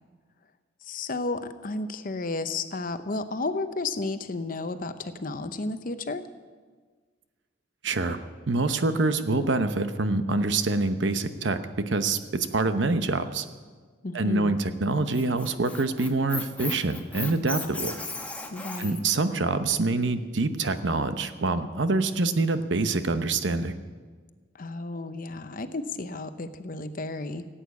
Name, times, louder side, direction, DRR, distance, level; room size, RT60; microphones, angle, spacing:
voice 1, 0.8-6.3 14.0-14.6 18.5-19.0 24.6-27.5, left 3 dB, 45° left, 10 dB, 0.7 m, -32 dB
voice 2, 7.8-8.2 8.5-13.5 14.1-18.0 18.8-23.8, right 3 dB, 70° right, 10 dB, 0.9 m, -26 dB
Squeak, 14.9-19.1, left 3 dB, 10° left, 1.1 m, -36 dB
16.0 x 8.8 x 8.3 m, 1.5 s
head